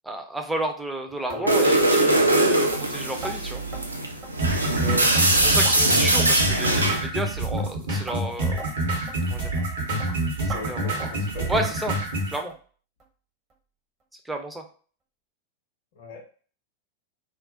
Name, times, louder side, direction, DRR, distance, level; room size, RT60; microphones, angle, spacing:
voice 1, 0.0-3.6 5.2-8.6 9.3-9.5 10.7-11.0 11.5-11.9 12.3-12.5 14.2-14.6, right 1 dB, 5° right, 3 dB, 0.4 m, -31 dB
voice 2, 1.3-1.7 4.8-5.1 10.5-11.6 16.0-16.2, left 2 dB, 55° left, -2 dB, 0.6 m, -37 dB
sound 1, 1.3-1.5 1.8-2.0 2.3-2.4 2.7-2.9 3.2-3.4 3.7-3.9 4.2-4.5 4.7-4.9 5.2-5.8 6.2-6.4 6.7-6.8 7.2-7.3 7.6-7.7 8.1-8.2 8.6-8.7 9.1-9.2 9.6-9.7 10.0-10.1 10.5-10.6 11.0-11.2 11.5-11.7 12.0-12.2 12.5-12.6 13.0-13.1 13.5-13.6, right 3 dB, 35° right, 0.7 m, -38 dB
sound 2, 1.5-7.1, right 1 dB, 80° right, 0.3 m, -21 dB
sound 3, 4.4-12.4, right 1 dB, 65° right, 0.9 m, -27 dB
2.3 x 2.0 x 2.6 m, 0.41 s
figure-of-eight pair, 90°, 0 cm